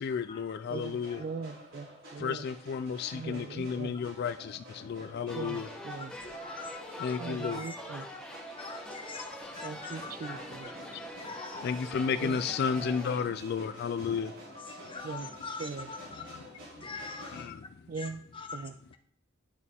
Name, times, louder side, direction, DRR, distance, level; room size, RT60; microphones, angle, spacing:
voice 1, 0.0-1.2 2.2-5.7 7.0-7.6 9.2-9.3 10.9-11.0 11.6-14.3 16.2-16.4 17.3-17.7, left 6 dB, 55° left, 0.3 m, -33 dB
voice 2, 0.7-2.5 3.1-4.0 5.3-6.1 7.2-8.1 9.6-10.7 12.2-12.5 12.8-13.0 15.0-15.3 15.6-15.9 17.9-18.2 18.5-18.7, right 4 dB, 45° right, 0.3 m, -40 dB
sound 1, 0.7-17.4, equal, 85° right, 4.3 m, -50 dB
sound 2, 5.3-13.2, equal, 5° left, 1.1 m, -44 dB
voice 3, 6.0-7.8 8.6-10.7 11.2-11.8 14.5-16.3 16.8-17.5 18.0-19.0, left 4 dB, 25° left, 1.1 m, -44 dB
11.0 x 6.7 x 3.4 m
head